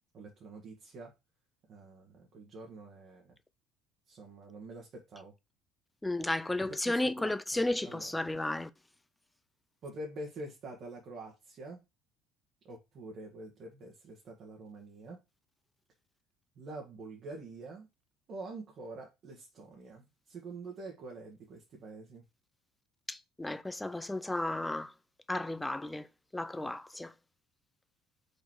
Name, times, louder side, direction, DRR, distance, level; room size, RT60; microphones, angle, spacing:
voice 1, 0.1-1.1 1.7-3.4 4.1-5.3 6.7-8.3 9.8-11.8 12.6-15.2 16.6-17.9 18.3-22.2, right 2 dB, 40° right, 1.8 m, -46 dB
voice 2, 6.0-8.7 23.1-24.9 25.3-26.1 26.3-27.1, left 2 dB, 5° left, 0.4 m, -33 dB
5.0 x 4.2 x 4.7 m
cardioid pair, 155°, 0 cm